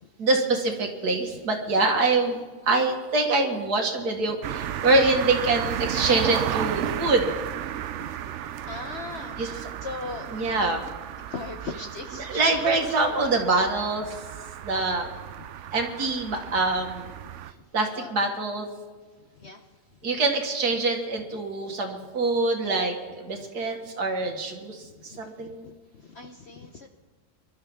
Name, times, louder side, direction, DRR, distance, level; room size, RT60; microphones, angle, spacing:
voice 1, 0.2-7.3 9.4-9.5 10.3-10.8 12.2-14.2 14.6-15.1 15.7-17.1 17.7-18.7 20.0-25.7, right 3 dB, 90° right, 2 dB, 2.3 m, -25 dB
sound 1, 4.4-17.5, right 10 dB, 65° right, 0.7 m, -34 dB
voice 2, 7.9-10.7 11.3-12.7 13.1-13.4 15.4-15.5 17.9-18.1 19.2-19.6 23.4-23.5 25.1-26.9, left 3 dB, 50° left, 4 dB, 1.0 m, -40 dB
23.5 x 12.5 x 3.6 m, 1.4 s
omnidirectional pair, 1.6 m